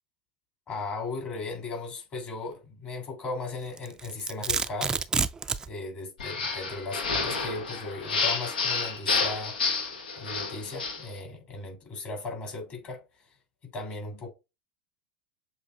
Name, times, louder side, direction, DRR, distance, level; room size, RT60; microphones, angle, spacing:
voice 1, 0.7-5.0 5.7-9.6 10.2-13.0 13.6-14.3, left 3 dB, 35° left, 2.7 m, -37 dB
Domestic sounds home sounds, 3.8-5.7, right 4 dB, 15° right, 0.3 m, -28 dB
sound 1, 6.2-11.1, left 4 dB, 85° left, 1.0 m, -30 dB
7.2 x 2.6 x 2.4 m
hypercardioid pair, 100°, 5 cm